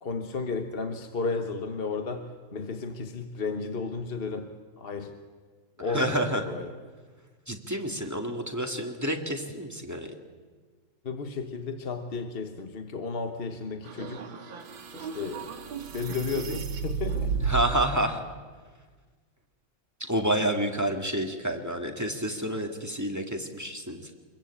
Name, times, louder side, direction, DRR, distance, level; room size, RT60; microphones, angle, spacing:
voice 1, 0.0-5.2 5.8-6.7 11.0-14.2 14.9-15.5 15.9-17.3, left 4 dB, 35° left, 7 dB, 1.1 m, -33 dB
voice 2, 5.9-6.4 7.5-10.1 17.4-18.3 20.1-24.1, right 1 dB, 10° right, 3 dB, 2.0 m, -29 dB
sound 1, 13.8-17.9, right 5 dB, 75° right, 2.4 m, -33 dB
25.5 x 22.0 x 8.5 m, 1.5 s
omnidirectional pair, 2.1 m